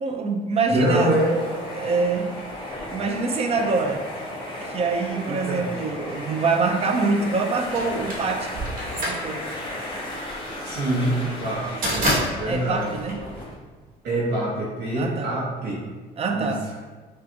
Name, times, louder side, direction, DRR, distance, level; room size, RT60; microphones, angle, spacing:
voice 1, 0.0-1.1 1.7-2.3 2.9-4.0 4.7-8.6 9.0-9.4 12.5-13.2 14.9-15.3 16.2-16.6, right 4 dB, 35° right, 5 dB, 0.5 m, -25 dB
voice 2, 0.7-1.3 5.3-5.7 10.6-12.9 14.0-15.8 16.3-16.6, right 1 dB, 75° right, -6 dB, 1.0 m, -25 dB
sound 1, 0.9-13.6, left 1 dB, 30° left, 1.1 m, -35 dB
sound 2, 7.8-13.9, equal, 55° right, 1.3 m, -28 dB
5.0 x 2.4 x 2.8 m, 1.3 s
cardioid pair, 110°, 17 cm